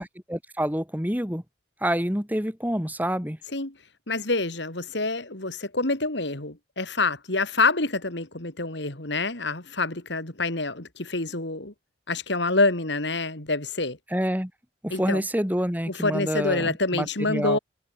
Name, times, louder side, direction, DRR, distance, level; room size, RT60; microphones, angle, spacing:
voice 1, 0.0-1.4 1.8-3.4 14.1-14.5 14.8-17.6, equal, 10° right, 2.7 m, -27 dB
voice 2, 4.1-11.7 12.1-14.0 14.9-15.2 15.9-17.6, left 3 dB, 65° left, 3.1 m, -27 dB
head